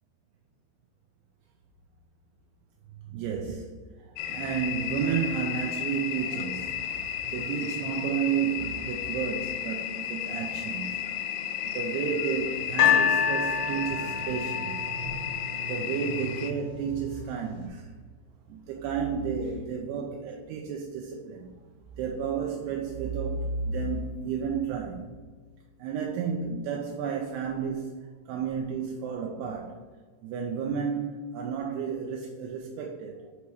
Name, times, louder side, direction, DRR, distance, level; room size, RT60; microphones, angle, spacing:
voice 1, 3.1-7.0 7.2-11.4 11.7-14.9 15.5-17.9 18.5-21.5 22.0-25.1 25.8-28.0 28.3-29.8 30.2-33.3, right 6 dB, 80° right, 2.6 m, -32 dB
sound 1, 4.2-16.5, left 10 dB, 85° left, 2.2 m, -34 dB
sound 2, 12.8-16.0 16.7-16.8, left 8 dB, 65° left, 2.0 m, -26 dB
8.1 x 3.1 x 4.7 m
omnidirectional pair, 4.9 m